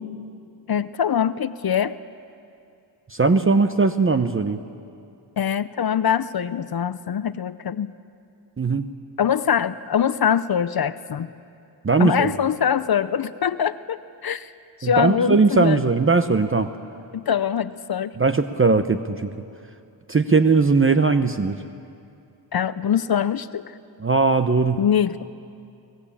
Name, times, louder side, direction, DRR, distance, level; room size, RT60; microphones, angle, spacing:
voice 1, 0.7-2.0 5.4-7.9 9.2-11.3 12.0-14.5 14.8-15.8 17.1-18.1 22.5-23.8 24.8-25.2, left 8 dB, 50° left, 14 dB, 0.7 m, -23 dB
voice 2, 3.1-4.6 8.6-8.8 11.8-12.3 14.8-16.7 18.2-19.3 20.1-21.6 24.0-24.8, right 4 dB, 25° right, 9 dB, 0.9 m, -19 dB
23.0 x 19.0 x 8.7 m, 2.5 s
cardioid pair, 70°, 46 cm